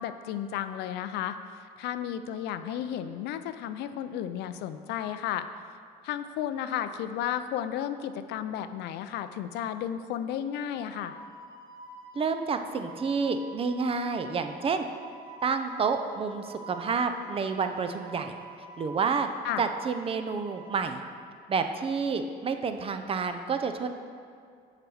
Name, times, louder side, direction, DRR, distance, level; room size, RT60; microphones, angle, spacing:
voice 1, 0.0-5.5 6.0-11.2 19.4-19.6, left 10 dB, 80° left, 11 dB, 0.4 m, -33 dB
Wind instrument woodwind instrument, 10.9-20.8, right 2 dB, 75° right, 1.4 m, -47 dB
voice 2, 12.1-14.9 15.4-18.3 18.8-19.3 19.6-21.0 21.5-23.9, right 5 dB, 35° right, 7 dB, 0.5 m, -29 dB
6.5 x 4.9 x 6.2 m, 2.3 s
cardioid pair, 110°, 17 cm